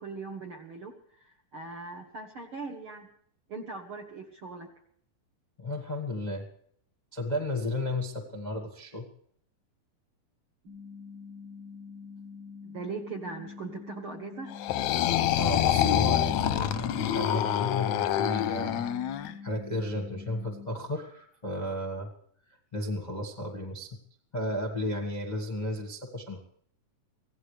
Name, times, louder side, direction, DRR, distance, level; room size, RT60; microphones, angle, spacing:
voice 1, 0.0-3.1 3.5-4.7 12.6-14.5, right 4 dB, 60° right, 2 dB, 1.4 m, -40 dB
voice 2, 5.6-6.4 7.1-9.0 15.4-18.9 19.4-22.1 22.7-23.9 24.3-26.4, left 1 dB, 35° left, 0 dB, 0.7 m, -33 dB
sound 1, 10.7-20.7, left 5 dB, 85° right, 8.5 m, -45 dB
sound 2, 14.5-19.3, left 11 dB, 75° left, 1.7 m, -26 dB
24.0 x 17.0 x 3.3 m, 0.64 s
omnidirectional pair, 3.9 m